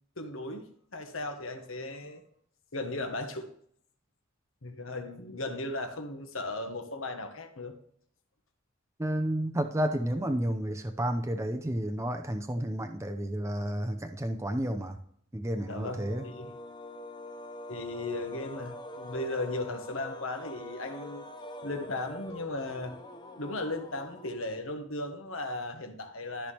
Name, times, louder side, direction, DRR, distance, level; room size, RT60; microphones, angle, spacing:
voice 1, 0.2-2.2 2.7-3.5 4.6-7.7 15.7-16.5 17.7-21.3 21.6-23.0 23.4-26.5, left 2 dB, 70° left, 1.5 m, -36 dB
voice 2, 9.0-15.0 15.3-16.3, right 1 dB, 15° right, 0.6 m, -31 dB
sound 1, 15.5-24.9, left 1 dB, 20° left, 0.7 m, -45 dB
13.5 x 5.7 x 3.3 m
head